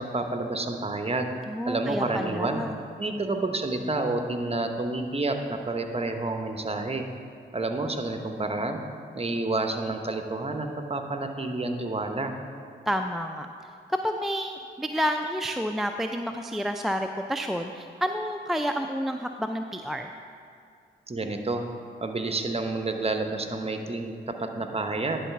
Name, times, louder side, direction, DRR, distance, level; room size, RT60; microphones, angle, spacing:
voice 1, 0.0-1.3 1.7-2.6 3.0-7.0 7.5-8.8 9.1-12.3 21.1-21.6 22.0-25.3, right 2 dB, 30° right, 5 dB, 0.9 m, -29 dB
voice 2, 1.5-2.8 12.9-13.5 13.9-20.1, equal, ahead, 5 dB, 0.4 m, -29 dB
10.5 x 4.1 x 5.8 m, 2.4 s
supercardioid pair, 45°, 21 cm